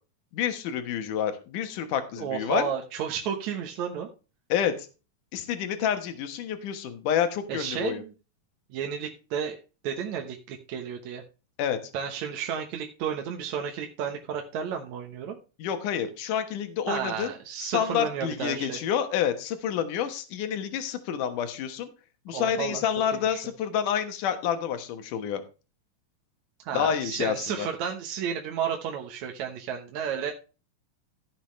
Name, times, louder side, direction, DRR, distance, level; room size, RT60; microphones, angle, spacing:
voice 1, 0.3-2.7 4.5-4.9 5.3-8.0 11.6-11.8 15.6-17.3 17.6-21.9 22.3-25.4 26.7-27.7, left 9 dB, 70° left, 8 dB, 2.7 m, -28 dB
voice 2, 2.2-4.1 7.5-8.1 8.7-9.6 9.8-11.2 11.9-15.4 16.9-18.8 22.3-22.8 23.1-23.4 26.7-30.3, right 7 dB, 65° right, 2 dB, 2.2 m, -32 dB
15.0 x 7.6 x 3.2 m, 0.32 s
omnidirectional pair, 4.0 m